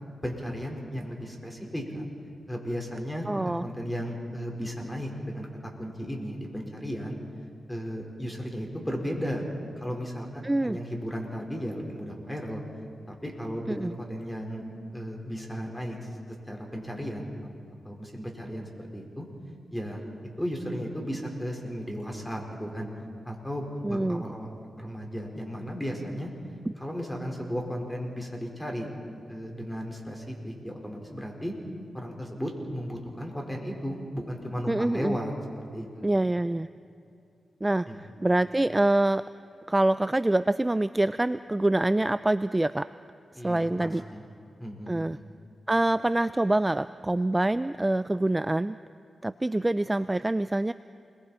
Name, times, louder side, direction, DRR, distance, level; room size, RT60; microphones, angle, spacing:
voice 1, 0.2-2.0 2.5-5.5 5.8-7.2 7.7-9.4 9.7-12.6 13.1-14.6 14.9-16.0 16.5-17.3 17.8-19.3 19.7-20.1 20.4-22.9 23.2-24.5 24.8-26.3 26.8-28.9 29.3-31.5 31.9-35.3 35.7-36.0 37.9-38.1 43.3-44.2 44.6-45.2, equal, 5° left, 0 dB, 4.6 m, -35 dB
voice 2, 3.3-3.7 10.4-10.8 13.7-13.9 23.8-24.2 34.7-35.2 36.0-36.7 37.6-37.9 38.2-39.2 39.7-42.9 43.3-44.0 44.9-45.2 45.7-48.8 49.2-50.7, right 1 dB, 20° right, 14 dB, 0.4 m, -25 dB
28.5 x 22.0 x 4.4 m, 2.5 s
cardioid pair, 60°, 0 cm